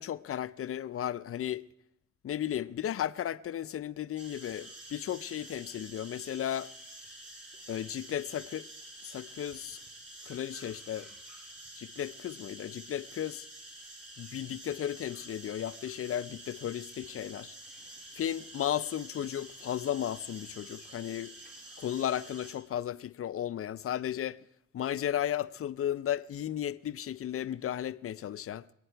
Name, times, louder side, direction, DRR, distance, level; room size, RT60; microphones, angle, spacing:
voice 1, 0.0-1.7 2.2-6.7 7.7-8.7 9.0-9.8 10.3-11.1 11.8-13.5 14.2-17.5 18.1-21.3 21.8-24.4 24.7-28.6, left 10 dB, 50° left, 0.6 m, -34 dB
sound 1, 4.2-22.5, right 1 dB, 40° right, 5.0 m, -49 dB
26.5 x 9.3 x 4.6 m
cardioid pair, 90°, 30 cm